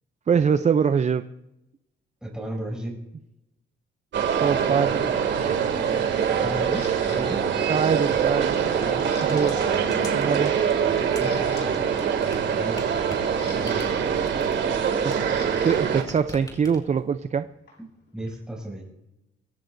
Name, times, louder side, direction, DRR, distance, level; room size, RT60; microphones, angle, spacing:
voice 1, 0.3-1.3 4.3-5.1 5.4-5.7 6.8-7.0 7.7-8.8 9.2-9.7 10.1-10.6 15.0-17.5, right 6 dB, 35° right, 11 dB, 0.6 m, -24 dB
voice 2, 2.2-3.0 6.4-7.5 8.8-9.1 11.2-11.8 12.5-13.1 13.4-13.9 18.1-18.9, right 1 dB, 5° right, -3 dB, 6.9 m, -34 dB
sound 1, 4.1-16.0, right 7 dB, 65° right, 2.5 m, -24 dB
Camera, 6.7-7.2 7.8-8.1 8.5-9.5 9.8-10.0 10.6-10.7 11.0-11.7 12.9-15.8 16.0-18.6, left 4 dB, 60° left, 6.5 m, -45 dB
sound 2, 8.0-15.8 16.0-17.0, left 1 dB, 20° left, 5.0 m, -43 dB
24.0 x 15.5 x 2.7 m, 0.88 s
cardioid pair, 90°, 20 cm